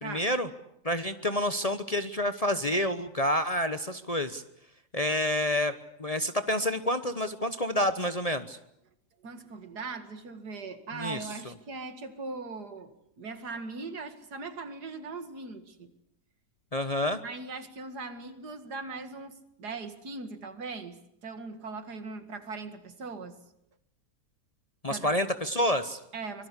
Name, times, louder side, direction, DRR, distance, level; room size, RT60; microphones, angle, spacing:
voice 1, 0.0-0.5 0.8-4.4 4.9-8.6 11.0-11.2 16.7-17.2 24.8-26.0, left 1 dB, 30° left, 9 dB, 0.9 m, -28 dB
voice 2, 9.2-15.9 17.2-23.4 24.9-25.2 26.1-26.5, right 4 dB, 85° right, 9 dB, 2.6 m, -40 dB
25.0 x 22.0 x 8.3 m, 0.78 s
omnidirectional pair, 1.7 m